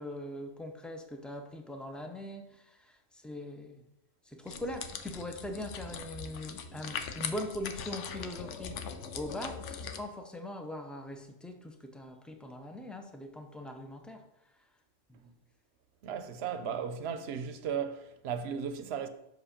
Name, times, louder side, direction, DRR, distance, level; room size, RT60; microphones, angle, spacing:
voice 1, 0.0-3.8 4.3-8.8 9.1-14.3 15.1-15.3, left 1 dB, ahead, 0.3 m, -41 dB
sound 1, 4.5-10.0, left 6 dB, 85° left, 1.0 m, -41 dB
voice 2, 16.0-19.1, right 7 dB, 65° right, 0.8 m, -35 dB
6.2 x 4.9 x 5.1 m
omnidirectional pair, 1.2 m